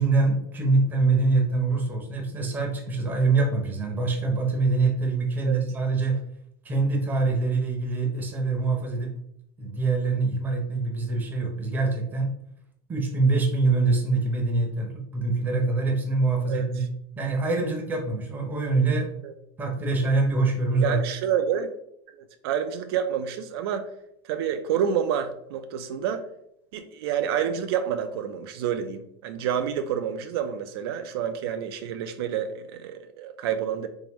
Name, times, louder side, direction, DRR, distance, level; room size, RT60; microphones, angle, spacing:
voice 1, 0.0-6.2 6.6-9.1 9.6-12.3 12.9-16.9 17.2-19.1 19.6-21.0, right 3 dB, 15° right, 2 dB, 0.6 m, -24 dB
voice 2, 20.8-21.7 22.1-22.2 22.4-23.9 24.2-26.2 26.7-33.9, right 8 dB, 70° right, 8 dB, 0.4 m, -28 dB
3.6 x 3.4 x 2.9 m, 0.75 s
supercardioid pair, 165°, 13 cm